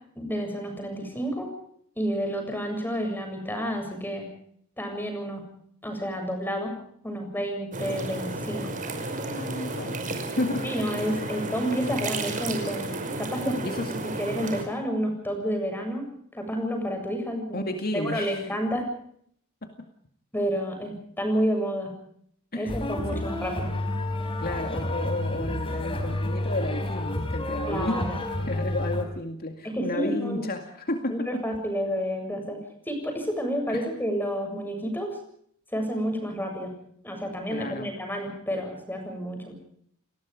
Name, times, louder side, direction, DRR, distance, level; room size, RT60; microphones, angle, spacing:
voice 1, 0.2-1.5 2.0-4.3 4.8-5.4 5.8-6.7 7.0-8.7 10.6-12.9 13.2-13.6 14.2-16.1 16.3-18.8 20.3-21.9 22.5-23.7 27.7-28.2 29.7-30.4 31.1-32.6 32.9-35.1 35.7-36.7 37.0-39.5, equal, 10° left, 5 dB, 7.4 m, -30 dB
sound 1, 7.7-14.6, right 2 dB, 40° right, 5.7 m, -32 dB
voice 2, 9.3-10.8 11.1-11.3 13.6-13.9 17.5-18.5 19.6-19.7 22.5-22.8 23.1-23.3 24.4-28.1 28.5-31.3 33.7-33.9 37.5-37.9, left 2 dB, 45° left, 5 dB, 2.2 m, -32 dB
sound 2, 22.7-29.0, left 1 dB, 25° left, 4.4 m, -30 dB
29.5 x 20.0 x 5.1 m, 0.66 s
head